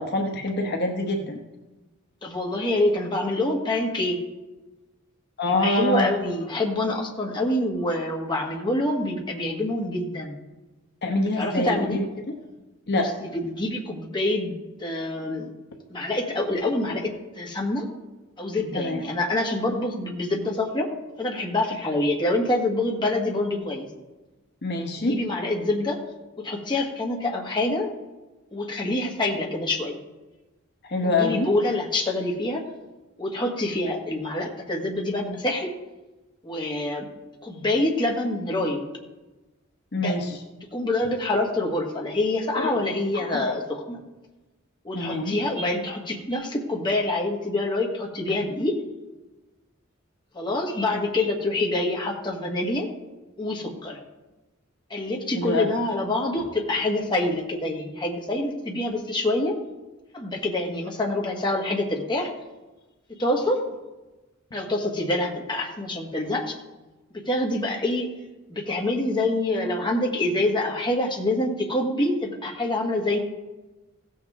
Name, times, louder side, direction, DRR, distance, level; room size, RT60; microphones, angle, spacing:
voice 1, 0.0-1.4 5.4-6.1 11.0-12.1 12.9-13.1 18.7-19.0 24.6-25.2 30.9-31.5 39.9-40.3 42.6-42.8 43.1-43.3 44.9-45.4 55.3-55.7, left 2 dB, 55° left, 3 dB, 1.0 m, -25 dB
voice 2, 2.2-4.2 5.5-10.4 11.3-12.0 13.0-15.5 15.9-17.9 18.4-20.9 21.2-23.9 25.0-26.0 26.4-27.9 28.5-30.0 31.0-32.6 33.2-35.7 36.4-37.1 37.4-38.8 39.9-40.2 40.7-44.0 44.8-48.8 50.3-52.9 53.4-54.0 54.9-59.6 60.1-62.3 63.1-63.6 64.5-66.5 67.1-68.1 68.5-73.2, left 2 dB, 20° left, 0 dB, 1.5 m, -26 dB
16.0 x 7.4 x 3.6 m, 1.1 s
head